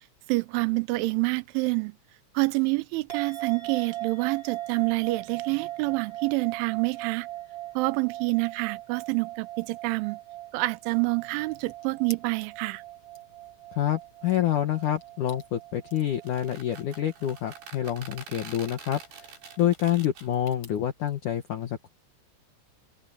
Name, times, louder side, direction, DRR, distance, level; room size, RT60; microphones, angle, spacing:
voice 1, 0.3-2.0 2.3-7.3 7.8-10.2 10.5-12.8, right 25 dB, 85° right, 3.1 m, -27 dB
sound 1, 3.1-19.6, right 15 dB, 25° right, 4.3 m, -40 dB
sound 2, 11.5-21.2, left 4 dB, 30° left, 5.4 m, -55 dB
voice 2, 13.7-21.9, left 11 dB, 75° left, 1.8 m, -28 dB
sound 3, 16.1-20.3, right 5 dB, 70° right, 7.8 m, -46 dB
open air
omnidirectional pair, 5.4 m